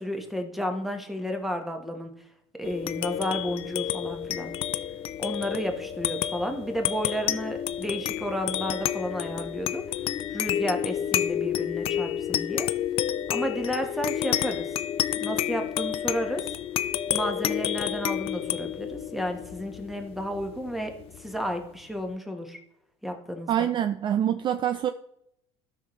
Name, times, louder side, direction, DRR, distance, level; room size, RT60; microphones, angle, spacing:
voice 1, 0.0-2.1 2.6-4.5 5.2-9.8 10.3-12.7 13.3-14.7 15.2-16.4 17.1-22.6 23.0-23.7, equal, ahead, 4 dB, 1.3 m, -32 dB
sound 1, 2.6-21.5, left 11 dB, 40° left, 0.4 m, -30 dB
voice 2, 23.5-24.9, right 10 dB, 35° right, 10 dB, 0.4 m, -25 dB
13.5 x 6.0 x 3.2 m, 0.78 s
supercardioid pair, 120°, 15 cm